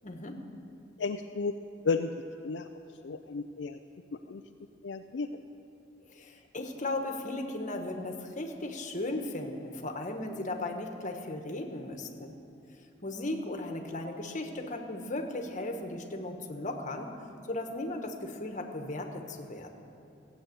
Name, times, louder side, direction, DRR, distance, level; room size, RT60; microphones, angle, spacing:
voice 1, 0.0-0.4 6.1-12.4 13.0-17.1 17.5-19.8, left 2 dB, 45° left, 4 dB, 1.3 m, -36 dB
voice 2, 1.0-1.6 1.8-2.1 2.4-2.7 3.0-3.8 4.1-4.4 4.8-5.3, left 4 dB, 70° left, 6 dB, 0.5 m, -32 dB
16.0 x 8.0 x 7.9 m, 2.7 s
head